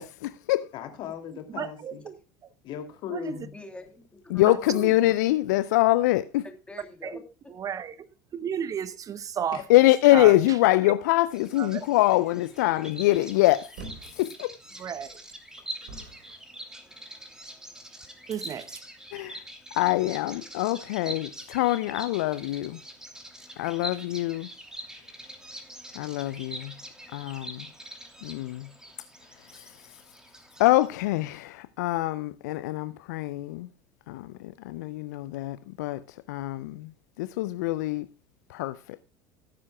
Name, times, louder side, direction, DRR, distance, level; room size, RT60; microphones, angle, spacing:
voice 1, 0.0-0.7 4.3-6.4 9.7-13.7 14.1-14.6 19.1-19.4 19.7-22.8 23.6-24.5 25.9-26.7 27.1-27.7 28.2-28.7 29.5-30.0 30.6-33.7 34.1-36.9 37.2-38.1 38.5-39.0, left 17 dB, 65° left, 0.5 m, -24 dB
voice 2, 0.7-2.1 2.6-3.5 9.5-9.6, left 9 dB, 50° left, 2.7 m, -37 dB
voice 3, 1.5-2.2 3.1-3.4 4.4-4.9 7.0-7.2 7.6-8.1 8.3-9.6 10.1-10.3 11.6-11.9 14.8-15.2 18.3-18.8, right 8 dB, 35° right, 0.8 m, -33 dB
voice 4, 3.5-4.8 6.4-7.2, left 2 dB, 10° left, 3.0 m, -45 dB
Bird vocalization bird call bird song, 11.3-30.9, right 1 dB, 5° right, 2.8 m, -44 dB
sound 1, 13.8-14.3 15.0-16.4 17.2-17.3, right 2 dB, 65° right, 3.9 m, -44 dB
17.5 x 9.6 x 2.3 m
figure-of-eight pair, 70°, 10 cm